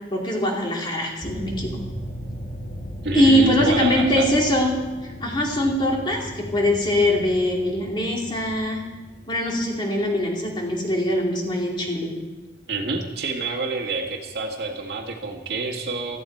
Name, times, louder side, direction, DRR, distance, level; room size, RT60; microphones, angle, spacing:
voice 1, 0.1-1.8 3.1-4.7 5.0-8.8 9.3-12.1, left 1 dB, 25° left, -1 dB, 2.5 m, -22 dB
sound 1, 1.2-12.2, equal, 45° left, 2.3 m, -37 dB
voice 2, 3.0-4.3 12.7-16.2, right 3 dB, 70° right, 1 dB, 1.8 m, -27 dB
16.5 x 14.0 x 4.5 m, 1.2 s
head